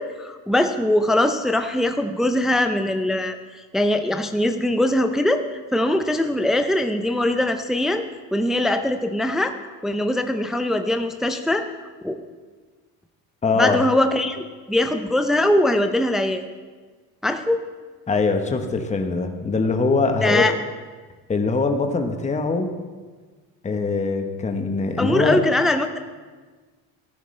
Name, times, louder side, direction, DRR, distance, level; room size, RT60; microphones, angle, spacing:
voice 1, 0.0-3.4 3.7-5.5 5.7-8.0 8.3-9.5 9.8-11.6 12.0-12.2 13.6-16.4 17.2-17.6 20.2-20.5 25.0-26.0, left 1 dB, ahead, 7 dB, 0.5 m, -21 dB
voice 2, 13.4-13.8 18.1-20.5 21.3-22.7 23.6-25.4, left 4 dB, 20° left, 5 dB, 1.0 m, -22 dB
15.0 x 11.0 x 3.3 m, 1.4 s
cardioid pair, 100°, 37 cm